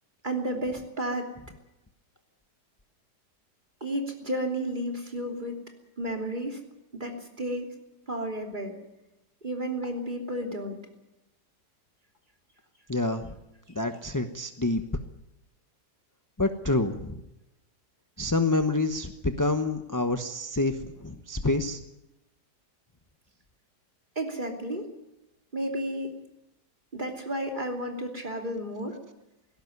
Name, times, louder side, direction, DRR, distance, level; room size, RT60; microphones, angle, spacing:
voice 1, 0.2-1.3 3.8-5.6 6.0-6.6 6.9-7.7 8.1-8.7 9.4-10.8 24.1-24.9 25.5-26.1 26.9-29.0, right 1 dB, 25° right, 3 dB, 3.2 m, -32 dB
voice 2, 12.9-13.3 13.7-14.8 16.4-17.2 18.2-21.8, left 2 dB, 15° left, 7 dB, 0.7 m, -27 dB
18.5 x 16.5 x 9.6 m, 0.93 s
omnidirectional pair, 1.8 m